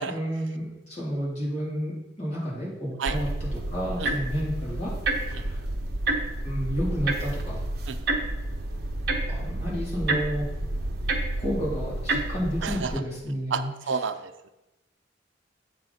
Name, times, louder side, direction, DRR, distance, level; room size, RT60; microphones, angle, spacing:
voice 1, 0.0-5.6 6.4-7.6 9.3-10.5 11.4-13.7, equal, 35° left, -6 dB, 3.2 m, -31 dB
sound 1, 3.1-13.0, right 2 dB, 55° right, 0.8 m, -29 dB
voice 2, 13.5-14.5, right 5 dB, 80° right, 10 dB, 0.5 m, -30 dB
8.4 x 6.2 x 4.1 m, 0.99 s
head